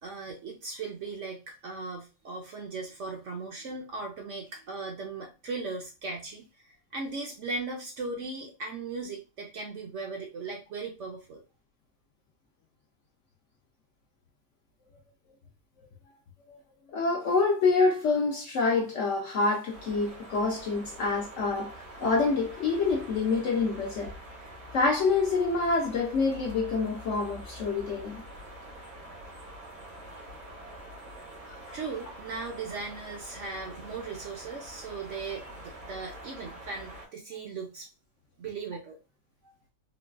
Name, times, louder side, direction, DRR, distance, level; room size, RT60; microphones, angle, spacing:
voice 1, 0.0-11.4 31.7-37.9 38.4-39.0, right 3 dB, 65° right, 0.8 m, -38 dB
voice 2, 16.9-24.1 24.7-28.2 31.6-31.8, left 4 dB, 65° left, 0.8 m, -27 dB
sound 1, 19.7-37.1, equal, 80° right, 1.7 m, -45 dB
3.8 x 2.2 x 2.3 m
omnidirectional pair, 1.7 m